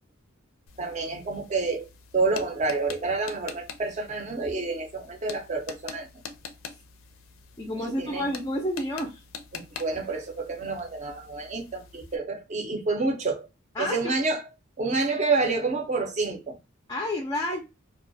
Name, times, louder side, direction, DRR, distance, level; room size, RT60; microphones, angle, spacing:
sound 1, 0.7-12.2, left 6 dB, 85° left, 0.4 m, -45 dB
voice 1, 0.8-6.1 7.7-8.3 9.5-13.5 13.8-14.4 14.8-16.6, right 3 dB, 35° right, 0.5 m, -28 dB
voice 2, 7.6-9.2 13.8-14.0 16.9-17.6, left 1 dB, 20° left, 0.3 m, -29 dB
2.3 x 2.1 x 2.5 m
head